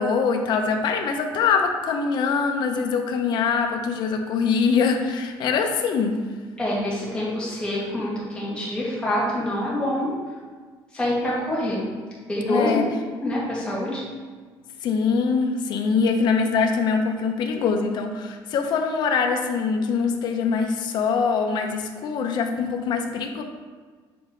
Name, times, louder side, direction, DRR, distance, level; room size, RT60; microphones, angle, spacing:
voice 1, 0.0-6.2 12.5-12.9 14.8-23.4, left 5 dB, 50° left, 4 dB, 0.6 m, -23 dB
voice 2, 6.6-10.1 10.9-11.8 12.3-12.8 13.2-14.0, left 1 dB, 10° left, -7 dB, 1.8 m, -26 dB
6.9 x 4.2 x 3.7 m, 1.5 s
cardioid pair, 155°, 9 cm